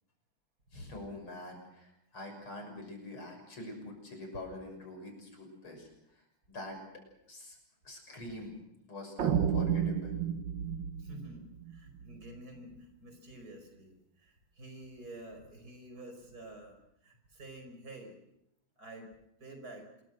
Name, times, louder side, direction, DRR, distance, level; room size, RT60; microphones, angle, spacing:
voice 1, 0.7-6.2 6.5-6.8 7.3-7.6 7.8-8.5 8.9-10.2, left 1 dB, 75° left, 4 dB, 7.3 m, -45 dB
sound 1, 9.2-12.3, right 8 dB, 60° right, 1.9 m, -32 dB
voice 2, 11.0-16.8 17.0-18.2 18.8-19.1 19.4-19.9, right 1 dB, 45° right, 5 dB, 5.7 m, -49 dB
27.0 x 22.5 x 6.4 m, 0.82 s
omnidirectional pair, 2.4 m